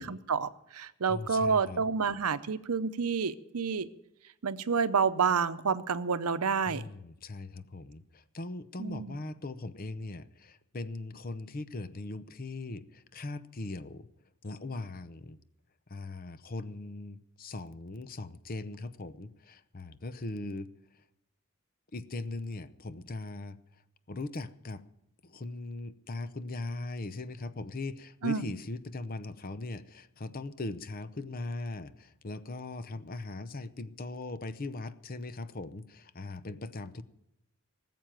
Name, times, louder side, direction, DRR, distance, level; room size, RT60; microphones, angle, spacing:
voice 1, 0.0-3.9 4.4-6.9 8.8-9.2 28.2-28.4, right 5 dB, 90° right, 13 dB, 0.7 m, -29 dB
voice 2, 1.1-1.8 6.7-14.1 14.4-15.4 15.9-20.7 21.9-23.6 24.1-24.8 25.2-37.0, left 2 dB, 40° left, 13 dB, 0.7 m, -40 dB
19.0 x 7.7 x 9.0 m, 0.82 s
head